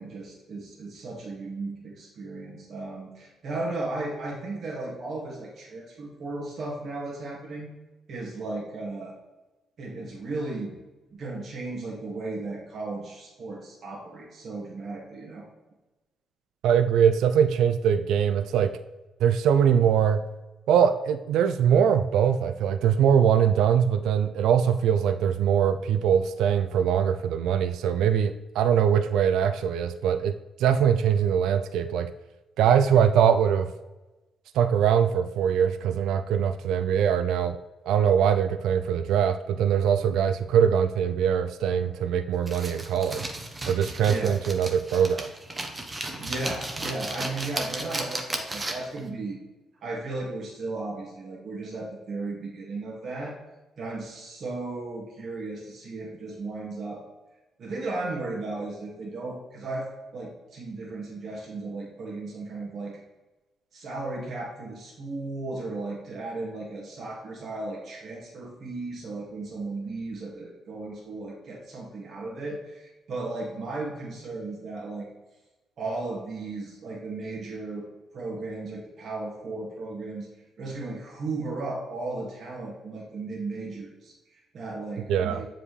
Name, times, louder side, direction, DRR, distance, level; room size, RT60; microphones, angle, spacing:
voice 1, 0.0-7.7 8.1-9.2 9.8-10.7 11.1-15.5 43.7-44.3 45.9-49.4 49.8-53.4 53.8-57.0 57.6-63.0 63.7-75.1 75.8-77.8 78.1-80.3 80.6-85.5, right 2 dB, 60° right, -4 dB, 2.0 m, -35 dB
voice 2, 16.6-18.7 19.2-20.2 20.7-30.3 30.6-32.1 32.6-33.7 34.5-37.6 37.9-43.3 43.7-45.3 85.1-85.4, right 8 dB, 85° right, 10 dB, 0.3 m, -22 dB
sound 1, 42.5-49.0, right 2 dB, 25° right, 1.0 m, -34 dB
7.5 x 4.9 x 3.2 m, 1.1 s
cardioid pair, 90°, 0 cm